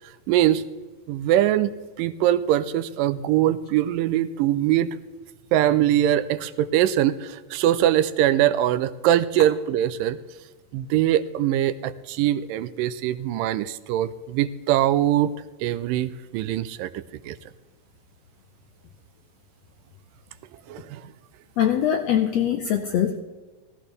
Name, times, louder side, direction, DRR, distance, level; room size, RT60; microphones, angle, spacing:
voice 1, 0.3-0.6 1.1-1.7 2.0-5.0 5.5-10.2 10.7-17.4 20.7-21.0, right 12 dB, 85° right, 14 dB, 2.2 m, -22 dB
voice 2, 21.6-23.2, left 10 dB, 75° left, 5 dB, 1.5 m, -22 dB
16.5 x 15.5 x 3.4 m, 1.3 s
omnidirectional pair, 3.9 m